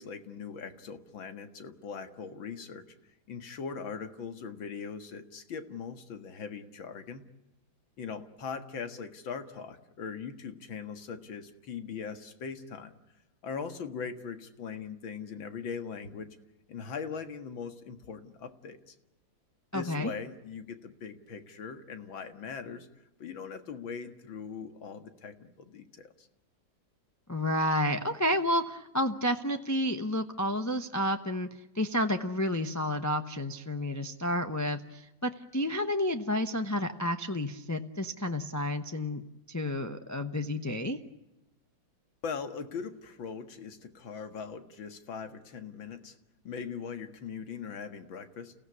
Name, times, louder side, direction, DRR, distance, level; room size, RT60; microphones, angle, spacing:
voice 1, 0.0-2.8 3.3-7.2 8.0-13.0 13.4-16.4 16.7-18.9 19.7-22.9 23.2-26.3 42.2-46.2 46.4-48.5, left 6 dB, 75° left, 9 dB, 2.5 m, -40 dB
voice 2, 19.7-20.1 27.3-31.5 31.7-39.2 39.5-41.0, left 1 dB, 15° left, 6 dB, 0.6 m, -30 dB
29.5 x 16.5 x 9.7 m, 0.95 s
omnidirectional pair, 2.1 m